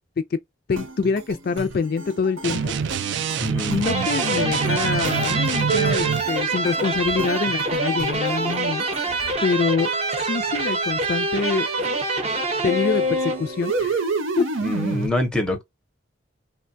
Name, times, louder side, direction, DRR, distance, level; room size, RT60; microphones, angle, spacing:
voice 1, 0.7-2.7 3.7-8.8 9.4-9.9 10.2-11.7 12.6-14.0 14.4-14.5, left 5 dB, 50° left, 0.3 m, -25 dB
sound 1, 0.7-9.4 9.8-15.1, right 4 dB, 80° right, 0.8 m, -32 dB
sound 2, 2.4-6.3, right 6 dB, 60° right, 0.3 m, -26 dB
voice 2, 3.4-3.8 14.6-15.6, left 1 dB, 5° left, 0.6 m, -25 dB
sound 3, 3.8-13.8, right 2 dB, 30° right, 0.6 m, -25 dB
3.1 x 2.2 x 2.5 m
head